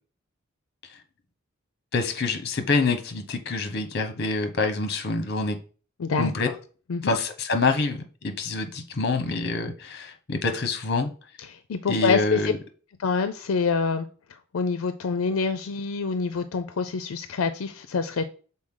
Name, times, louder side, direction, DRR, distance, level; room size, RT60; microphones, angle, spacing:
voice 1, 1.9-5.6 6.2-6.5 7.0-11.1 11.9-12.6, left 3 dB, 50° left, 7 dB, 0.9 m, -26 dB
voice 2, 6.0-6.3 6.9-7.1 11.5-12.5 13.0-14.1 14.5-18.2, left 5 dB, 80° left, 10 dB, 0.5 m, -26 dB
6.3 x 4.1 x 3.7 m, 0.39 s
head